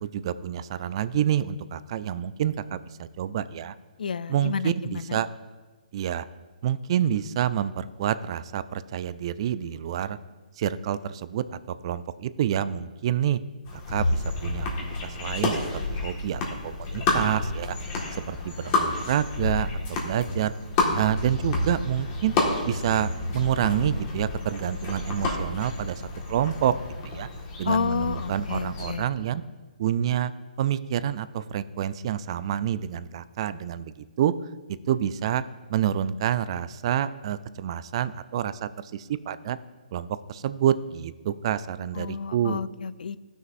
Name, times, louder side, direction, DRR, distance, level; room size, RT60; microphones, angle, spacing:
voice 1, 0.0-3.7 4.3-5.3 5.9-6.2 6.6-10.2 10.6-13.4 13.7-14.7 15.0-17.8 18.1-20.5 20.9-22.4 22.6-26.7 27.0-27.3 27.6-29.4 29.8-30.3 30.6-34.3 34.9-35.4 35.7-39.6 39.9-42.6, right 10 dB, 40° right, 15 dB, 0.3 m, -28 dB
voice 2, 4.0-5.2 27.7-29.1 42.0-43.2, left 6 dB, 70° left, 17 dB, 0.3 m, -30 dB
sound 1, 13.6-28.9, left 2 dB, 30° left, 1.6 m, -30 dB
13.5 x 6.3 x 2.6 m, 1.3 s
hypercardioid pair, 150°, 5 cm